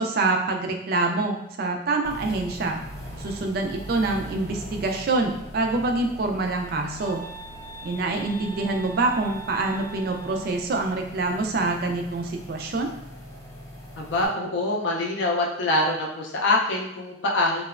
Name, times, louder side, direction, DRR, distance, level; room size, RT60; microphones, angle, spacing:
voice 1, 0.0-2.8 3.2-7.2 7.8-12.9, right 3 dB, 55° right, 3 dB, 0.3 m, -26 dB
sound 1, 2.0-14.3, equal, 15° left, 0.5 m, -41 dB
sound 2, 7.0-10.6, right 4 dB, 70° right, 0.8 m, -42 dB
voice 2, 14.0-17.6, left 2 dB, 75° left, 0 dB, 0.4 m, -24 dB
2.9 x 2.0 x 2.3 m, 0.84 s
head